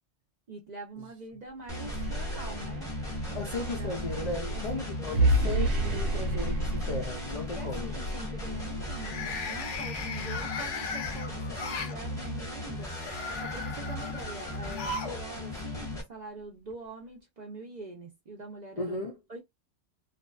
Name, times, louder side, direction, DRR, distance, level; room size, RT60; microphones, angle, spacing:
voice 1, 0.5-2.9 3.4-4.0 4.5-6.3 7.5-13.0 13.4-19.0 19.3-19.4, right 3 dB, 50° right, 0.6 m, -44 dB
sound 1, 1.7-16.0, left 2 dB, 5° left, 0.8 m, -38 dB
sound 2, 1.8-9.8, right 1 dB, 80° right, 0.9 m, -31 dB
voice 2, 3.3-7.9 18.8-19.1, left 3 dB, 50° left, 0.4 m, -36 dB
sound 3, 5.9-6.0 6.4-6.8 8.9-12.0 12.8-15.2 15.5-15.6 16.7-16.8, left 4 dB, 80° left, 0.9 m, -38 dB
2.5 x 2.2 x 2.2 m
omnidirectional pair, 1.2 m